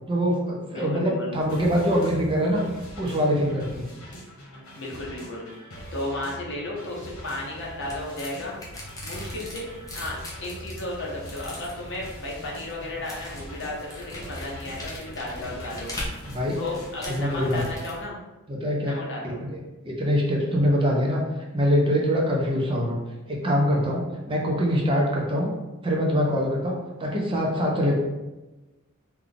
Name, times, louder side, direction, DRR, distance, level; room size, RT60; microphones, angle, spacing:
voice 1, 0.1-2.6 3.0-3.9 16.3-16.6 17.1-17.6 18.5-18.9 19.2-19.6 19.8-21.2 21.5-23.0 23.3-25.5 25.8-28.0, equal, 25° right, -2 dB, 0.6 m, -24 dB
voice 2, 0.7-1.3 4.8-5.5 5.9-8.6 9.0-9.7 9.9-15.9 16.2-18.2 18.8-19.4, left 1 dB, 60° left, -3 dB, 0.9 m, -34 dB
sound 1, 1.3-17.8, equal, 80° left, 1.2 m, -43 dB
sound 2, 7.4-18.1, left 1 dB, 15° left, 0.7 m, -41 dB
3.4 x 2.3 x 3.7 m, 1.1 s
head